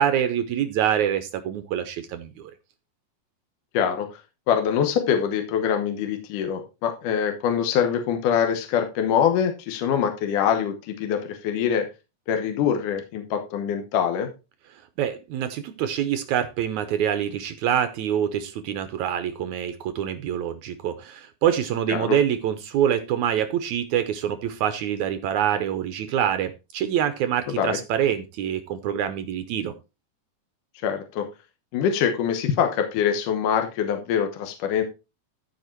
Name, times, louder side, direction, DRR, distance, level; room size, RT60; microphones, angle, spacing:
voice 1, 0.0-2.5 15.0-29.7, right 9 dB, 75° right, 10 dB, 1.7 m, -25 dB
voice 2, 3.7-4.1 4.5-11.9 12.3-14.3 21.9-22.2 27.6-27.8 30.8-31.3 31.7-34.8, left 8 dB, 65° left, 5 dB, 2.4 m, -24 dB
14.0 x 5.0 x 4.5 m, 0.28 s
omnidirectional pair, 4.3 m